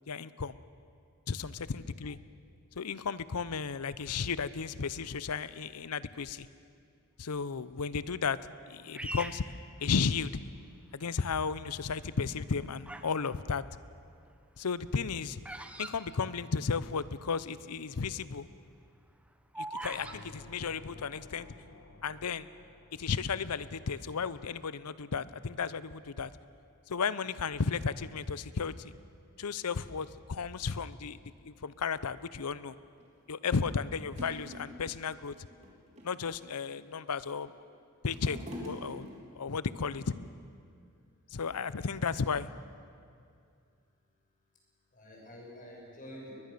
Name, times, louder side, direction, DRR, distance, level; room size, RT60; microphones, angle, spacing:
voice 1, 0.1-0.5 1.3-2.2 2.8-6.5 7.2-8.4 8.7-9.4 9.8-10.4 10.9-13.6 14.6-15.4 15.8-18.5 19.6-21.5 22.0-22.5 22.9-26.3 26.9-28.9 29.4-31.2 31.4-32.7 33.3-35.3 36.0-37.5 38.0-39.1 39.3-40.1 41.3-42.5, left 5 dB, 90° left, 16 dB, 0.7 m, -34 dB
voice 2, 1.5-1.8 44.9-46.3, equal, 40° left, -2 dB, 6.5 m, -48 dB
Bird vocalization bird call bird song, 8.9-10.4 11.1-11.5 12.3-13.2 13.5-17.0 17.2-17.3 17.5-17.9 18.3-20.2, right 1 dB, 5° right, 1.0 m, -43 dB
sound 1, 19.9-23.7, left 2 dB, 65° left, 1.8 m, -53 dB
sound 2, 33.0-33.1 33.8-33.9 34.2-35.0 35.5-36.3 36.9-37.6 37.8-39.4 40.2-40.3, equal, 30° right, 3.3 m, -45 dB
21.5 x 21.0 x 6.8 m, 2.4 s
head